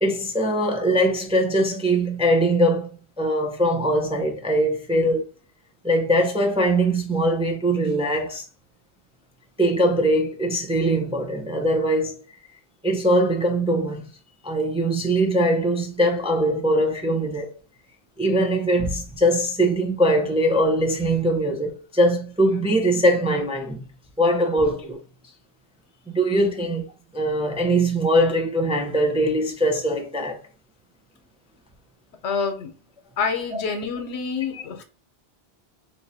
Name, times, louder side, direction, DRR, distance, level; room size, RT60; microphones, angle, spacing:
voice 1, 0.0-2.9 3.2-5.3 5.8-8.4 9.6-12.2 12.8-14.1 14.4-17.5 18.2-23.8 24.2-25.0 26.1-26.9 27.1-30.4 33.5-33.6 34.5-34.6, right 1 dB, 10° right, 0.4 m, -21 dB
voice 2, 32.2-32.7 33.2-34.8, left 5 dB, 90° left, 1.0 m, -27 dB
3.0 x 2.6 x 4.0 m
omnidirectional pair, 1.1 m